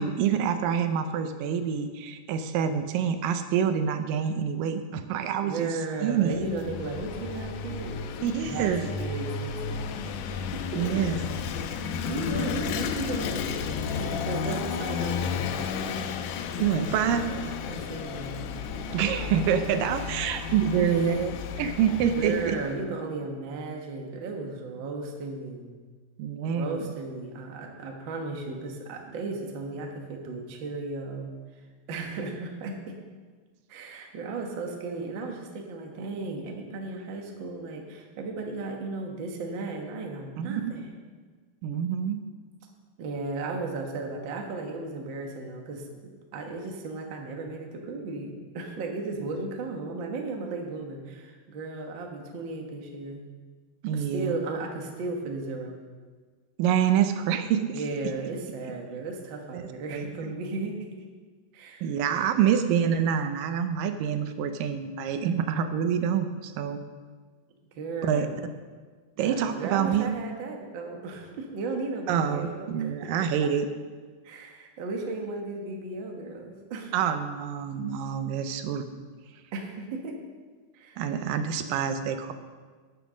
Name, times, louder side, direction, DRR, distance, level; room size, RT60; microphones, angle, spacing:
voice 1, 0.0-5.7 6.0-6.4 8.2-8.8 10.8-11.2 16.6-17.3 18.9-21.3 21.6-22.6 26.2-26.9 40.4-40.7 41.6-42.2 53.8-54.4 56.6-57.8 59.5-60.3 61.8-66.8 68.0-68.3 69.2-70.1 72.1-73.7 76.9-78.9 81.0-82.3, right 8 dB, 85° right, 8 dB, 2.4 m, -26 dB
voice 2, 5.4-8.1 8.4-10.2 10.5-11.0 11.6-13.6 13.9-15.5 17.7-18.6 20.7-21.2 21.9-25.7 26.4-31.3 31.9-32.9 33.7-40.9 43.0-45.9 46.3-53.2 53.9-55.8 57.7-61.0 61.5-61.9 67.7-68.4 69.2-72.9 74.2-76.9 79.5-80.2 80.7-81.0, right 3 dB, 50° right, 2 dB, 1.5 m, -35 dB
Vehicle / Engine, 6.2-22.8, left 6 dB, 80° left, 2.1 m, -33 dB
10.0 x 8.2 x 6.2 m, 1.5 s
omnidirectional pair, 3.8 m